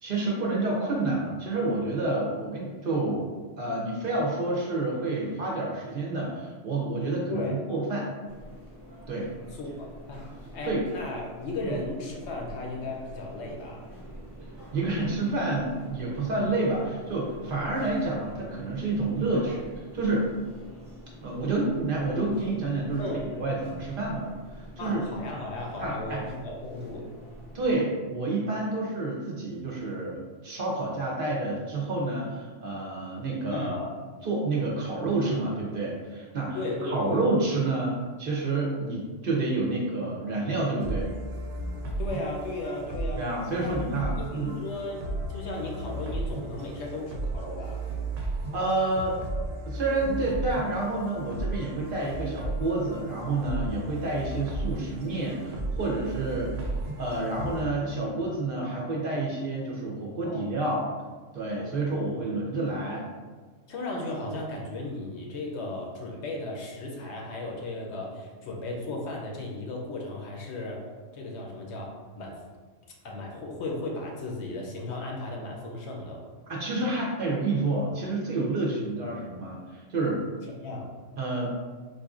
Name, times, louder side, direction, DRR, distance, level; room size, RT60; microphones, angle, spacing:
voice 1, 0.0-3.3 3.6-8.1 9.1-9.3 10.6-10.8 11.6-11.8 14.7-19.7 19.9-20.3 21.2-25.0 25.8-26.2 27.5-33.9 34.2-41.1 43.2-44.5 48.5-49.2 49.7-56.7 57.0-60.9 61.3-63.0 76.5-80.2 81.2-81.5, right 2 dB, 55° right, -3 dB, 0.7 m, -29 dB
sound 1, 8.3-27.8, equal, 15° right, 0.7 m, -46 dB
voice 2, 9.5-10.2 10.5-13.8 23.0-23.3 24.8-27.1 33.5-33.8 36.5-37.2 42.0-43.2 43.5-43.7 44.1-47.8 60.2-60.6 61.6-62.2 63.7-70.9 71.1-72.4 73.0-76.3 80.6-80.9, left 2 dB, 70° left, -1 dB, 0.8 m, -35 dB
sound 2, 40.8-57.6, right 1 dB, 85° right, 0.9 m, -35 dB
4.0 x 2.5 x 2.4 m, 1.4 s
omnidirectional pair, 1.3 m